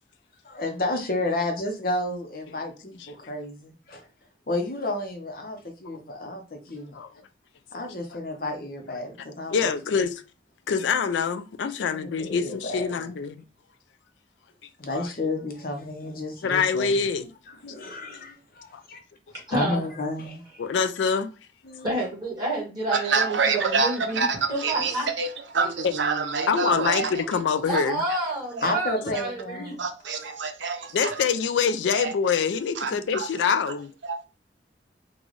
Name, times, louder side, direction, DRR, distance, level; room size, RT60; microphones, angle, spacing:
voice 1, 0.4-4.0 4.5-6.9 7.7-9.5 11.8-13.1 14.8-16.9 17.5-19.0 19.5-20.4 21.6-22.0 28.6-29.8, left 2 dB, 50° left, 0.8 m, -31 dB
voice 2, 9.5-10.1 10.7-13.4 14.9-15.1 16.4-17.3 18.7-18.8 20.6-21.3 25.8-25.9 26.5-28.0 30.9-33.9, left 6 dB, 85° left, 0.4 m, -25 dB
voice 3, 19.3-19.8 20.1-20.2 21.8-25.1 27.7-29.8, right 2 dB, 25° right, 1.7 m, -29 dB
voice 4, 22.9-27.4 27.7-27.8 28.1-28.7 29.8-31.2 31.9-32.1 32.7-33.3 33.7-33.8 34.0-34.3, right 4 dB, 85° right, 0.7 m, -27 dB
3.9 x 2.4 x 3.1 m
head